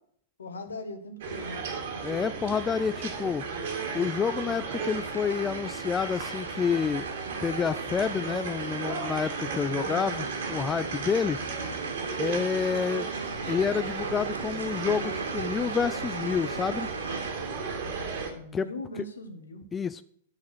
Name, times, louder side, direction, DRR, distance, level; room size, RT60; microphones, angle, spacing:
voice 1, 0.4-1.7 9.6-10.0 18.4-19.6, left 2 dB, 75° left, 8 dB, 1.4 m, -40 dB
sound 1, 1.2-18.3, right 5 dB, 60° right, 2.3 m, -35 dB
voice 2, 2.0-3.5 3.9-7.1 7.4-11.4 12.2-13.1 13.5-16.9 18.5-18.7 19.7-20.0, left 6 dB, 20° left, 14 dB, 0.3 m, -29 dB
sound 2, 4.9-17.3, right 3 dB, 85° right, 0.7 m, -39 dB
8.5 x 6.0 x 6.2 m, 0.66 s
figure-of-eight pair, 100°, 0 cm